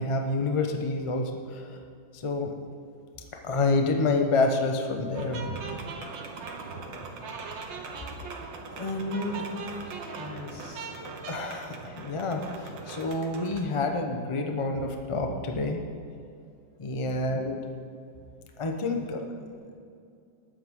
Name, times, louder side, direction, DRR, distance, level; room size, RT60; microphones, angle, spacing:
voice 1, 0.0-1.8 2.1-2.6 3.4-5.4 8.7-9.5 11.3-15.8 16.8-17.6 18.6-19.3, left 3 dB, 50° left, 4 dB, 0.3 m, -28 dB
sound 1, 5.1-13.7, right 4 dB, 70° right, 1.7 m, -39 dB
voice 2, 6.6-7.2 9.8-11.0 17.0-17.4 18.8-19.5, left 3 dB, 90° left, -1 dB, 2.6 m, -46 dB
19.5 x 8.6 x 3.8 m, 2.5 s
omnidirectional pair, 2.2 m